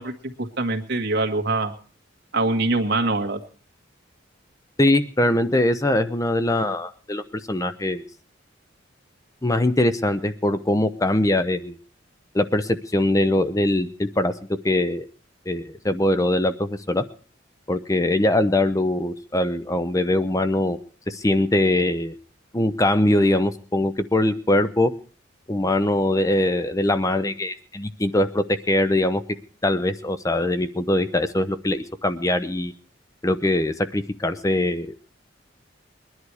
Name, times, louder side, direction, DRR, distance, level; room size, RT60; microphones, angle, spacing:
voice 1, 0.0-1.7 2.3-3.4, right 2 dB, 60° right, 3 dB, 1.8 m, -24 dB
voice 2, 4.8-8.0 9.4-11.8 12.3-14.3 14.6-15.1 15.5-17.0 17.7-20.8 21.1-22.2 22.5-24.9 25.5-29.2 29.6-32.7 33.2-35.1, left 1 dB, 15° left, 11 dB, 0.6 m, -22 dB
21.0 x 11.0 x 4.8 m, 0.41 s
head